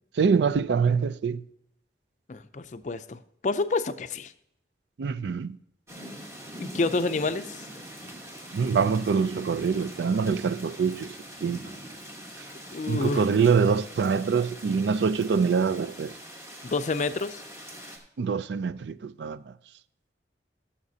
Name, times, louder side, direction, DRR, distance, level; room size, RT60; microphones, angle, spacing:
voice 1, 0.2-1.4 5.0-5.6 8.5-11.7 12.9-16.2 18.2-19.5, right 5 dB, 75° right, 0.4 m, -25 dB
voice 2, 2.3-4.3 6.6-7.6 12.7-13.2 16.6-17.4, left 3 dB, 40° left, 0.4 m, -28 dB
sound 1, 5.9-18.0, equal, 15° right, 1.2 m, -43 dB
15.5 x 7.0 x 2.7 m
head